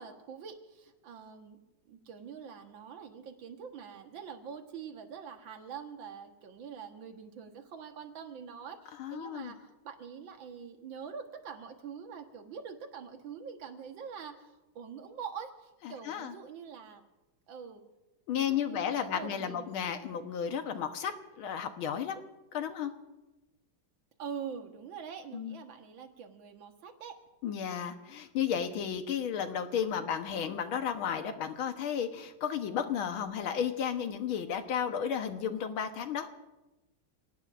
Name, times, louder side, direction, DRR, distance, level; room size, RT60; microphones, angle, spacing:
voice 1, 0.0-1.6 1.9-17.0 17.5-17.8 18.3-19.8 24.2-27.2, right 7 dB, 65° right, 5 dB, 2.1 m, -44 dB
voice 2, 9.0-9.5 15.9-16.4 18.3-22.2 22.5-22.9 25.3-25.6 27.4-36.3, left 8 dB, 75° left, 7 dB, 1.9 m, -33 dB
28.5 x 18.0 x 2.6 m, 1.0 s
omnidirectional pair, 2.3 m